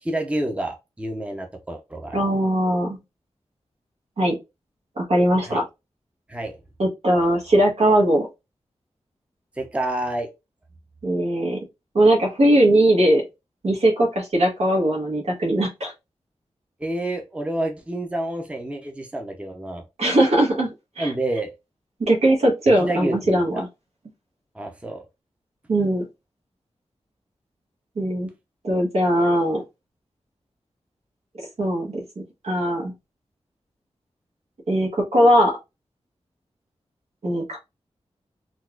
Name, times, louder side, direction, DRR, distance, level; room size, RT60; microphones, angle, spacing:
voice 1, 0.0-2.2 5.4-5.6 6.3-6.6 9.6-10.3 16.8-19.8 21.0-21.5 22.8-23.6 24.5-25.0, right 1 dB, 10° right, 3 dB, 0.6 m, -28 dB
voice 2, 2.1-3.0 4.2-4.4 5.0-5.6 6.8-8.3 11.0-11.6 11.9-13.2 13.6-15.9 20.0-20.7 21.0-21.1 22.0-23.7 25.7-26.1 28.0-28.3 28.6-29.6 31.6-32.9 34.7-35.6 37.2-37.6, right 1 dB, 70° right, -1 dB, 1.1 m, -20 dB
3.9 x 2.4 x 2.3 m, 0.24 s
wide cardioid pair, 115°, 11 cm